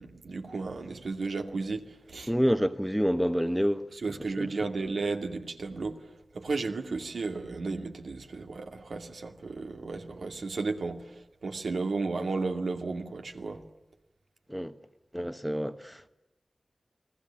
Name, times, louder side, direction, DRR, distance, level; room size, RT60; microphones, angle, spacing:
voice 1, 0.0-2.3 3.9-13.6, right 3 dB, 85° right, 2.4 m, -34 dB
voice 2, 2.3-3.9 4.4-4.5 14.5-14.7 15.1-16.1, equal, ahead, 1.3 m, -27 dB
29.5 x 19.0 x 8.8 m
wide cardioid pair, 55°, 0 cm